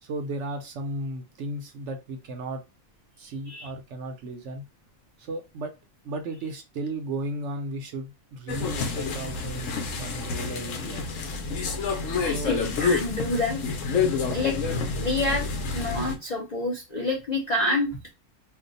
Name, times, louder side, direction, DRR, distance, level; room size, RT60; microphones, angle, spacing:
voice 1, 0.0-2.6 3.2-4.7 5.2-5.7 6.0-11.1 12.2-12.6 14.1-14.5, right 2 dB, 65° right, 6 dB, 0.8 m, -35 dB
sound 1, 8.5-16.2, left 4 dB, 70° left, 1.0 m, -28 dB
voice 2, 12.2-13.6 14.3-14.6 15.0-18.1, left 2 dB, 45° left, -2 dB, 0.5 m, -28 dB
2.7 x 2.2 x 3.8 m, 0.26 s
omnidirectional pair, 1.5 m